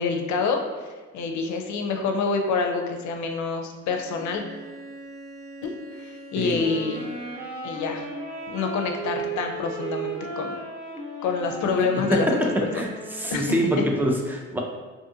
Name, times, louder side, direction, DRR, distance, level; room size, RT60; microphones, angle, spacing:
voice 1, 0.0-4.4 5.6-7.1 7.6-8.1 8.5-10.5 11.2-12.9 13.3-13.8, left 4 dB, 70° left, 4 dB, 0.5 m, -27 dB
Bowed string instrument, 3.8-7.6, right 1 dB, 45° right, 1.1 m, -43 dB
sound 1, 6.5-13.6, right 3 dB, 75° right, 0.9 m, -35 dB
voice 2, 13.2-14.6, equal, 5° right, 1 dB, 0.4 m, -25 dB
2.5 x 2.5 x 2.7 m, 1.3 s
cardioid pair, 90°, 30 cm